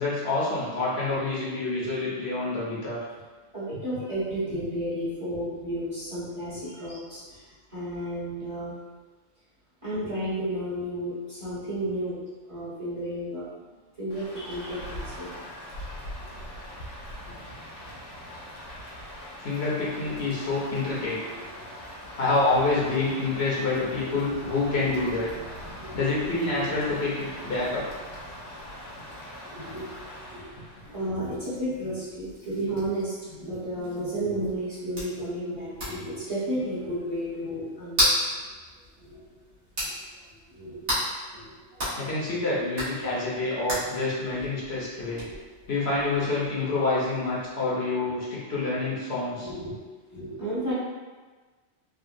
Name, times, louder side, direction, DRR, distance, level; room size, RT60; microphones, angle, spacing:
voice 1, 0.0-3.0 6.9-7.0 19.4-21.2 22.2-25.3 25.9-27.8 42.0-45.2 45.7-49.5, left 3 dB, 65° left, -6 dB, 0.9 m, -27 dB
voice 2, 3.5-7.4 7.7-8.8 9.8-12.2 12.5-13.4 14.0-15.3 20.0-20.3 21.8-21.9 25.7-26.0 27.4-27.5 29.5-29.9 30.2-30.5 30.8-38.4 39.0-39.2 39.8-39.9 40.5-40.9 41.3-41.9 42.2-42.4 42.9-43.1 43.7-43.8 44.5-44.6 45.2-45.4 48.8-48.9 49.4-49.8 50.1-50.7, right 1 dB, 30° right, -11 dB, 1.1 m, -33 dB
Rain, 14.1-31.1, equal, 80° left, 1.3 m, -41 dB
sound 1, 31.1-47.5, equal, 55° right, 1.4 m, -35 dB
3.5 x 2.2 x 2.5 m, 1.3 s
omnidirectional pair, 1.2 m